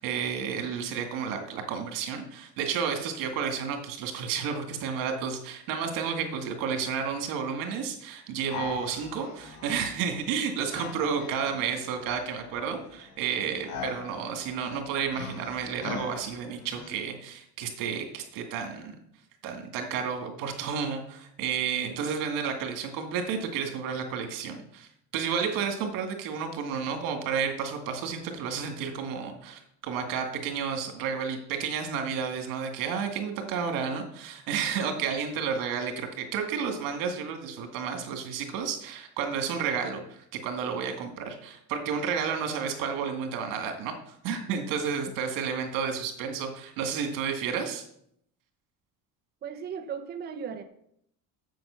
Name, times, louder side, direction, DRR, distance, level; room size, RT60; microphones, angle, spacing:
voice 1, 0.0-18.9 19.4-44.0 44.2-47.8, right 6 dB, 85° right, 5 dB, 2.1 m, -31 dB
sound 1, 8.5-16.9, left 4 dB, 70° left, 1.7 m, -42 dB
voice 2, 49.4-50.6, right 7 dB, 30° right, 5 dB, 0.7 m, -36 dB
7.8 x 7.0 x 7.0 m, 0.72 s
cardioid pair, 170°, 33 cm